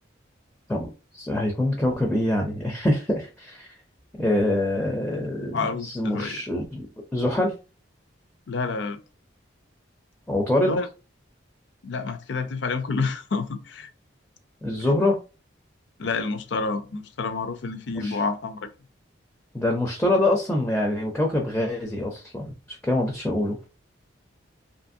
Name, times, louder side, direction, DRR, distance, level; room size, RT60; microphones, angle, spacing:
voice 1, 0.7-3.7 4.2-6.9 7.1-7.5 10.3-10.8 14.6-15.2 17.9-18.2 19.5-23.6, left 1 dB, 5° left, 0.4 m, -25 dB
voice 2, 5.5-6.4 8.5-9.0 10.7-10.9 11.8-13.9 16.0-18.7, left 4 dB, 65° left, 0.4 m, -28 dB
2.9 x 2.5 x 2.6 m
head